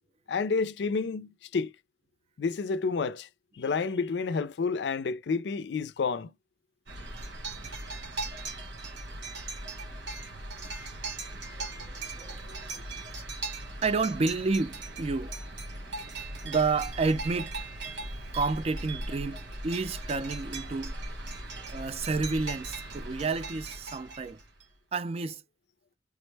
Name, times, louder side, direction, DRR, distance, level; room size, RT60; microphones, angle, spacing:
voice 1, 0.3-1.7 2.4-3.3 3.6-6.3, left 4 dB, 65° left, 0.4 m, -29 dB
sound 1, 6.9-24.6, right 2 dB, 85° right, 1.5 m, -39 dB
voice 2, 11.5-12.9 13.8-15.4 16.4-17.7 18.3-21.0 21.7-24.4 24.9-25.4, right 4 dB, 35° right, 0.4 m, -30 dB
3.5 x 2.1 x 3.2 m
head